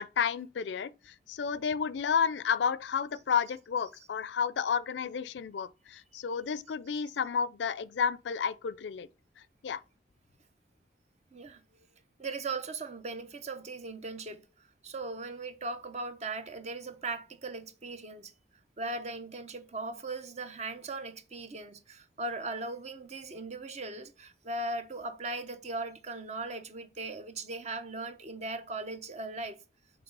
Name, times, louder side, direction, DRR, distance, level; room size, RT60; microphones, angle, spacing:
voice 1, 0.0-9.1 9.6-9.8, left 6 dB, 85° left, 0.4 m, -31 dB
voice 2, 12.2-14.4 14.8-18.3 18.8-29.6, right 2 dB, 40° right, 0.8 m, -38 dB
5.9 x 3.5 x 5.3 m
head